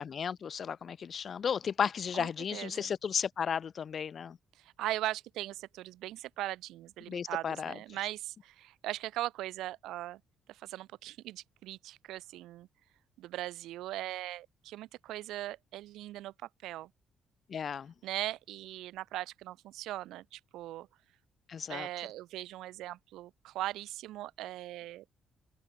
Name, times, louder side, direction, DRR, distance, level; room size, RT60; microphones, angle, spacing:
voice 1, 0.0-4.4 7.1-7.7 17.5-17.9 21.5-21.9, left 7 dB, 50° left, 1.7 m, -34 dB
voice 2, 2.1-2.9 4.6-10.2 10.5-12.7 13.2-16.9 18.0-20.9 21.7-25.0, right 15 dB, 90° right, 5.3 m, -39 dB
open air
cardioid pair, 90°, 0 cm